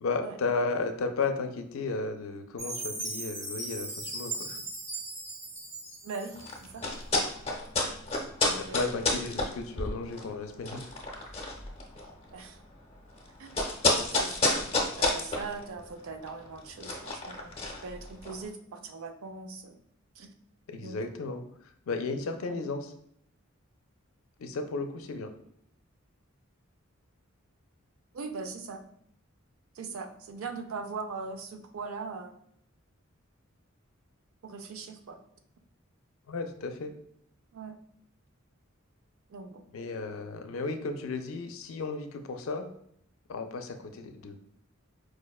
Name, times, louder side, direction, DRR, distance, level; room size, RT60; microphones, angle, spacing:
voice 1, 0.0-4.6 8.6-10.9 20.7-21.4 21.9-22.9 24.4-25.3 36.3-36.9 39.7-42.7 43.3-44.4, left 3 dB, 75° left, 6 dB, 0.4 m, -34 dB
Chime, 2.6-6.8, right 2 dB, 55° right, 1.3 m, -38 dB
voice 2, 6.0-6.9 8.4-8.9 12.3-12.6 13.4-13.5 14.1-19.8 20.2-20.3 20.8-21.0 22.4-22.7 28.1-28.8 29.7-32.4 34.4-35.2 37.5-37.8 39.3-39.6, right 4 dB, 80° right, 7 dB, 0.4 m, -41 dB
sound 1, 6.3-18.5, left 2 dB, 30° left, 0.6 m, -31 dB
4.7 x 2.1 x 2.3 m, 0.70 s
head